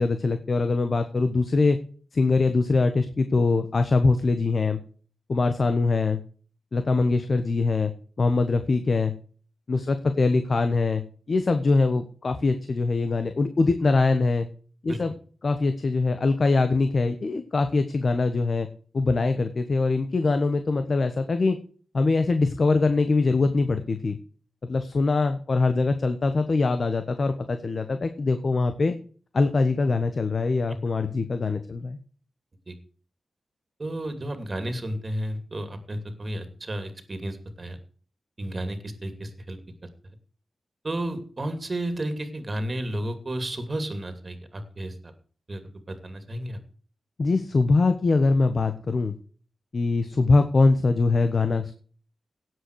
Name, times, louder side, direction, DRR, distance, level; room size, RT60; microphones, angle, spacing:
voice 1, 0.0-1.8 2.1-4.8 5.3-6.2 6.7-7.9 8.2-9.1 9.7-11.0 11.3-14.5 14.8-15.1 15.4-18.7 18.9-21.6 21.9-24.2 24.6-29.0 29.3-32.0 47.2-49.1 49.7-51.7, left 3 dB, 45° left, 9 dB, 1.2 m, -23 dB
voice 2, 33.8-37.8 38.4-39.6 40.8-45.1 45.5-45.6 45.9-46.6, right 1 dB, 30° right, 9 dB, 2.7 m, -32 dB
17.5 x 7.9 x 4.8 m, 0.41 s
wide cardioid pair, 130°, 0 cm